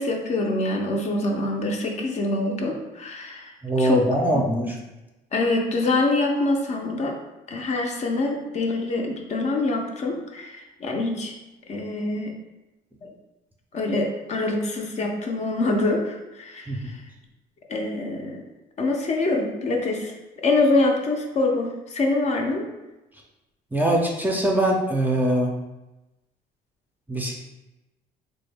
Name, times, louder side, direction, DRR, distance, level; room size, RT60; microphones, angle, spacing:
voice 1, 0.0-4.1 4.3-4.4 5.3-7.1 7.5-11.4 11.7-12.4 13.0-13.1 13.7-17.0 17.7-18.5 18.8-20.1 20.4-22.6, left 2 dB, 40° left, 1 dB, 0.5 m, -25 dB
voice 2, 3.6-4.8 16.7-16.8 23.7-25.5 27.1-27.4, right 1 dB, 10° right, 0 dB, 0.5 m, -22 dB
3.4 x 2.1 x 3.3 m, 1.0 s
cardioid pair, 110°, 17 cm